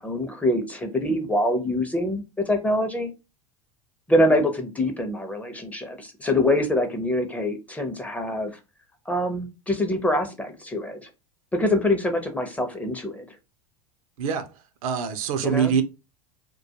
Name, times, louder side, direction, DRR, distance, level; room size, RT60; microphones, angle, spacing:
voice 1, 0.0-3.1 4.1-8.6 9.1-11.1 11.5-13.3 15.4-15.7, left 1 dB, 10° left, 0.5 m, -25 dB
voice 2, 14.2-14.5 14.8-15.8, right 7 dB, 70° right, 0.5 m, -24 dB
2.2 x 2.2 x 2.7 m
hypercardioid pair, 95°, 18 cm